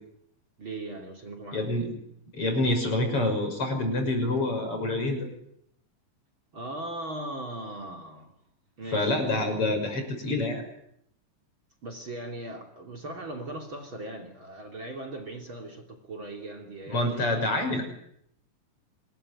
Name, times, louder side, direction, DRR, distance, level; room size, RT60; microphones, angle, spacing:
voice 1, 0.6-1.9 6.5-8.3 8.8-9.5 11.8-17.3, right 2 dB, 35° right, 6 dB, 3.6 m, -39 dB
voice 2, 1.5-1.9 2.3-5.3 8.9-10.6 16.9-17.9, left 2 dB, 40° left, 4 dB, 7.0 m, -27 dB
26.5 x 21.0 x 9.8 m, 0.73 s
omnidirectional pair, 3.8 m